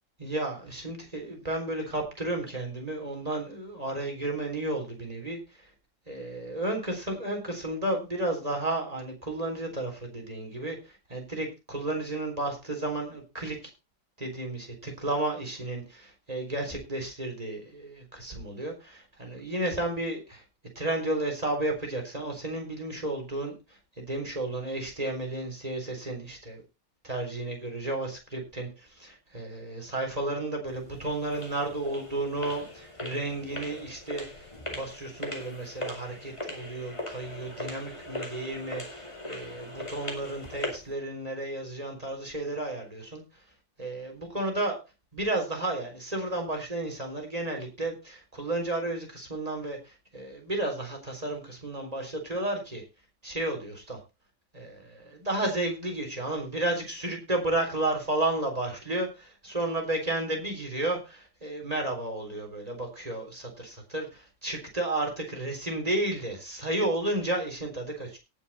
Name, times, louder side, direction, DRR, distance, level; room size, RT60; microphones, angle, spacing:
voice 1, 0.2-5.4 6.1-13.6 14.2-20.4 20.8-23.5 24.0-26.6 27.0-43.2 43.8-44.8 45.1-52.8 53.2-54.0 54.5-68.2, right 2 dB, 15° right, 2 dB, 3.9 m, -32 dB
sound 1, 30.7-40.9, left 1 dB, 15° left, 2.7 m, -40 dB
18.0 x 6.7 x 4.2 m, 0.28 s
omnidirectional pair, 2.3 m